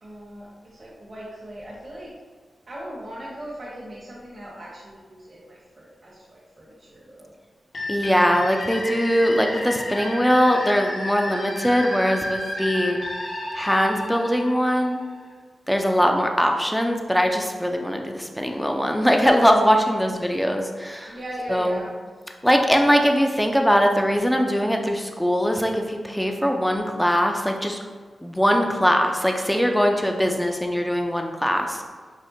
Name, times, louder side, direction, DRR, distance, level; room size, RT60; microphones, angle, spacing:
voice 1, 0.0-2.1 2.7-7.3 21.1-22.1, equal, 50° right, -7 dB, 0.9 m, -39 dB
sound 1, 7.7-15.3, left 1 dB, 70° left, 0.9 m, -32 dB
voice 2, 7.9-13.0 13.5-15.0 15.7-21.2 21.5-21.8 22.4-27.8 28.2-31.8, equal, 5° left, 3 dB, 0.4 m, -21 dB
4.9 x 2.1 x 2.7 m, 1.5 s
cardioid pair, 45°, 0 cm